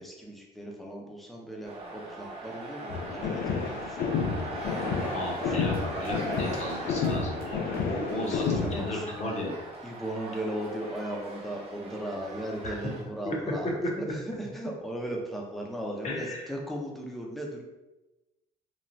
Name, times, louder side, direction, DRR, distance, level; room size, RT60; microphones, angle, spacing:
voice 1, 0.0-4.2 4.5-5.7 8.1-9.5 9.8-17.6, right 1 dB, ahead, -1 dB, 0.5 m, -37 dB
sound 1, 1.6-13.0, right 2 dB, 35° right, 0.7 m, -39 dB
sound 2, 2.9-8.9, left 5 dB, 65° left, 0.4 m, -31 dB
voice 2, 5.1-9.5 12.3-12.8 13.2-13.4 14.0-14.1 16.0-16.4, left 2 dB, 40° left, -1 dB, 0.7 m, -35 dB
3.1 x 2.2 x 2.5 m, 1.0 s
cardioid pair, 110°, 17 cm